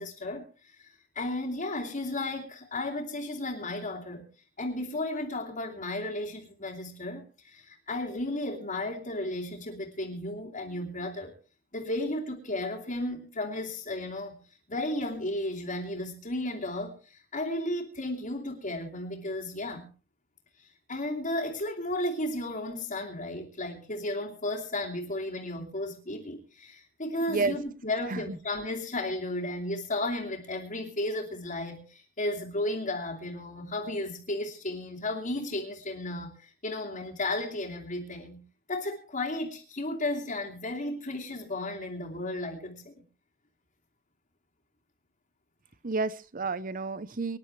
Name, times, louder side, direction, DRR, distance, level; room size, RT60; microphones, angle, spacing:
voice 1, 0.0-4.2 4.6-11.3 11.7-14.4 14.7-19.9 20.6-38.4 38.7-43.0, left 1 dB, 35° left, -5 dB, 2.8 m, -34 dB
voice 2, 45.8-47.4, right 3 dB, 40° right, 16 dB, 0.8 m, -30 dB
25.5 x 11.0 x 3.3 m, 0.36 s
head